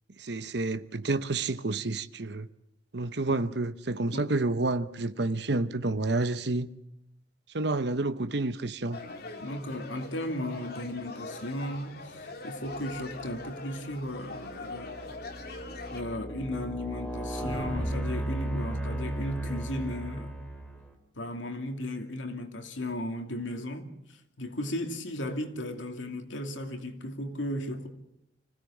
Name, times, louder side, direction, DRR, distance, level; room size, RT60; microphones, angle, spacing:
voice 1, 0.2-2.5 2.9-6.7 7.5-9.0, right 2 dB, 60° right, 0.9 m, -29 dB
sound 1, 8.9-16.0, left 2 dB, 55° left, 2.6 m, -42 dB
voice 2, 9.4-15.0 15.9-20.3 21.2-27.9, left 1 dB, 85° left, 2.6 m, -35 dB
sound 2, 13.4-13.5 14.1-20.9, right 1 dB, 5° left, 2.7 m, -35 dB
26.5 x 16.5 x 7.3 m
head